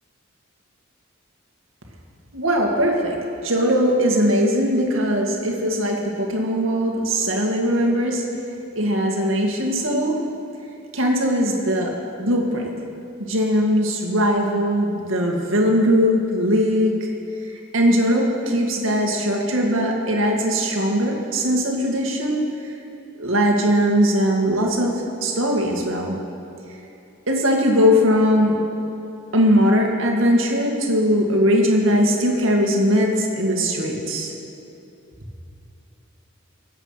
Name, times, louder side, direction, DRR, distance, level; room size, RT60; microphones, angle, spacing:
voice 1, 2.3-3.2 3.4-8.2 8.8-10.2 10.9-11.9 12.2-12.6 13.2-17.0 17.7-22.4 23.2-26.2 27.3-28.5 29.3-34.3, equal, 75° right, 0 dB, 2.1 m, -20 dB
22.0 x 8.1 x 5.8 m, 2.8 s
head